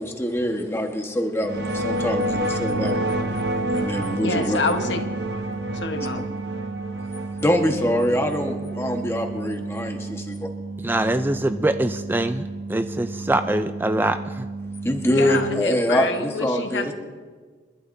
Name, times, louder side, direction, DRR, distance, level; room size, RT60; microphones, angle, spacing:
voice 1, 0.0-3.0 3.7-4.6 7.4-10.5 14.8-16.9, equal, 15° left, 1.3 m, -24 dB
sound 1, 1.4-10.1, right 1 dB, 70° right, 1.0 m, -29 dB
sound 2, 1.4-15.6, right 3 dB, 85° right, 2.3 m, -33 dB
voice 2, 4.2-5.0 5.7-6.2 15.2-16.9, left 3 dB, 85° left, 1.2 m, -27 dB
voice 3, 10.8-14.5, right 1 dB, 10° right, 0.3 m, -24 dB
29.5 x 12.0 x 2.7 m
head